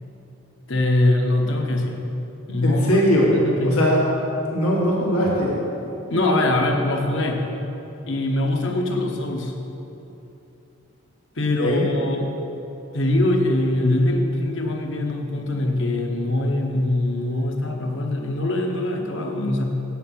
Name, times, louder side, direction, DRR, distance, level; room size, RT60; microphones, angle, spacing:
voice 1, 0.7-2.0 2.5-2.9 3.2-3.8 6.1-7.4 8.1-9.5 11.4-12.3 12.9-19.6, left 1 dB, 55° left, 2 dB, 1.0 m, -22 dB
voice 2, 2.6-3.3 3.6-4.0 4.5-5.6 11.6-11.8, equal, 90° left, -4 dB, 1.8 m, -20 dB
8.5 x 8.3 x 5.7 m, 2.9 s
head